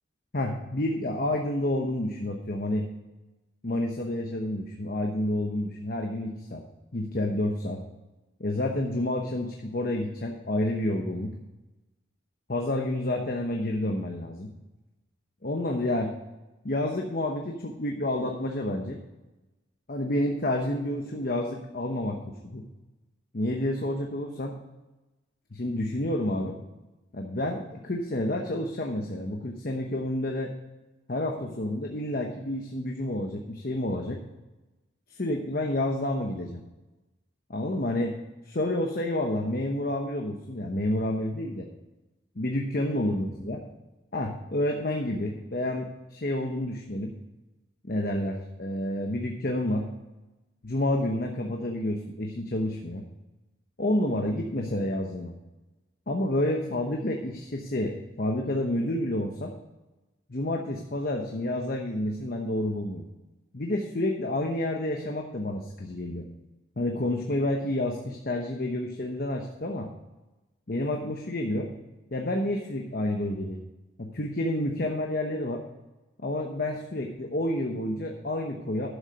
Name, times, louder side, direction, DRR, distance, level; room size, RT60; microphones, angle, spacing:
voice 1, 0.3-2.9 3.6-6.6 6.9-7.8 8.4-11.3 12.5-14.5 15.4-16.1 16.6-19.0 19.9-22.2 22.4-22.6 23.3-24.6 25.5-26.6 27.1-30.5 31.1-34.2 35.1-36.6 37.5-38.2 38.5-41.7 42.4-43.6 44.1-47.1 47.8-49.9 50.6-53.0 53.8-55.3 56.1-59.5 60.3-63.0 63.5-66.3 66.8-69.9 70.7-71.7 72.1-73.6 74.0-75.6 76.2-79.0, left 1 dB, 50° left, 2 dB, 1.0 m, -29 dB
11.5 x 7.2 x 5.2 m, 1.1 s
head